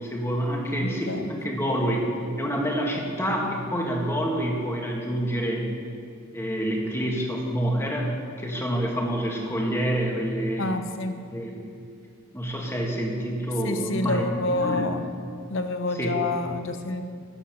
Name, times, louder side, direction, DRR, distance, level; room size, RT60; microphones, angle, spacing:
voice 1, 0.0-2.1 2.4-5.7 6.3-8.1 8.4-10.7 11.3-11.7 12.3-14.9 16.0-16.2, equal, 10° left, -1 dB, 2.0 m, -27 dB
voice 2, 0.8-1.3 10.6-11.2 13.6-15.0 15.5-17.0, left 2 dB, 65° left, 8 dB, 0.9 m, -28 dB
14.0 x 9.6 x 6.9 m, 2.3 s
head